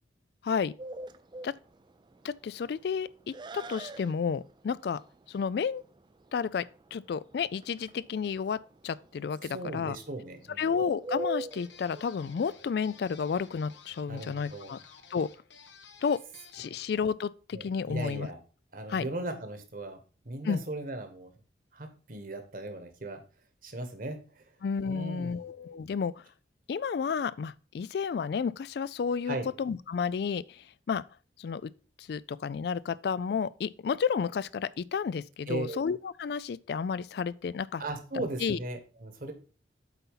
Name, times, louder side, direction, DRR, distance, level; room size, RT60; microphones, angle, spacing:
Bird, 0.8-13.8, right 2 dB, 25° right, 0.4 m, -43 dB
voice 1, 2.2-5.0 5.3-5.8 6.3-6.7 6.9-8.6 8.8-10.0 10.6-14.8 15.1-15.3 16.0-16.2 16.5-18.3 18.9-19.0 20.4-20.6 24.6-26.1 26.7-31.0 31.4-31.7 32.0-37.8 38.4-38.6, left 6 dB, 60° left, 0.3 m, -31 dB
voice 2, 9.4-10.7 14.1-14.7 17.5-18.4 18.7-21.3 21.7-23.2 23.6-24.4 24.8-25.4 29.3-29.5 35.5-35.8 37.8-39.3, right 2 dB, 50° right, 1.4 m, -38 dB
sound 1, 11.5-16.8, left 5 dB, 80° left, 1.2 m, -54 dB
8.2 x 4.1 x 5.6 m
head